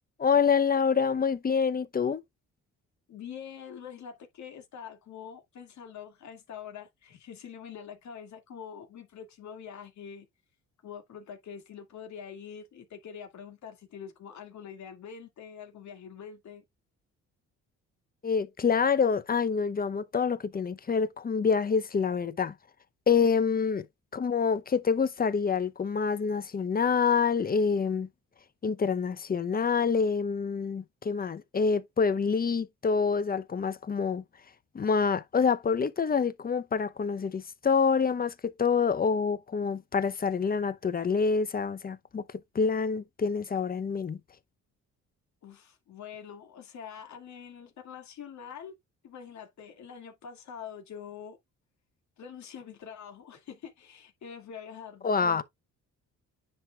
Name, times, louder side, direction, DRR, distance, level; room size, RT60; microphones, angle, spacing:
voice 1, 0.2-2.2 18.2-22.5 23.1-23.9 24.1-28.1 28.6-34.2 34.7-42.2 42.5-44.2 55.0-55.4, left 5 dB, 30° left, 0.7 m, -27 dB
voice 2, 3.1-10.3 10.8-16.6 45.4-48.8 49.0-51.4 52.2-55.4, left 7 dB, 65° left, 2.2 m, -45 dB
9.7 x 4.6 x 2.3 m
cardioid pair, 90°, 30 cm